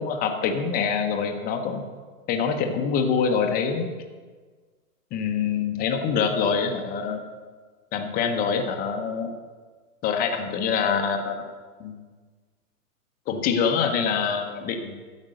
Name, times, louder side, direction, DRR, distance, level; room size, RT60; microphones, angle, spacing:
voice 1, 0.0-1.8 2.3-3.9 5.1-7.2 7.9-9.4 10.0-11.4 11.8-11.9 13.3-14.9, left 6 dB, 20° left, 5 dB, 0.8 m, -25 dB
13.5 x 5.3 x 6.5 m, 1.5 s
hypercardioid pair, 130°, 45 cm